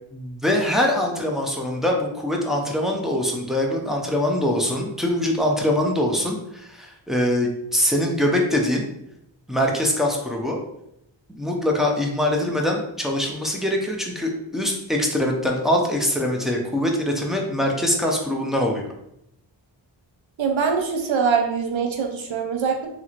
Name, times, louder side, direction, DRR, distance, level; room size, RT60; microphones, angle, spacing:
voice 1, 0.1-8.8 9.5-10.6 11.3-18.8, left 1 dB, ahead, -1 dB, 0.5 m, -23 dB
voice 2, 20.4-22.9, right 6 dB, 75° right, 3 dB, 0.6 m, -23 dB
2.9 x 2.9 x 2.5 m, 0.79 s
wide cardioid pair, 65°, 47 cm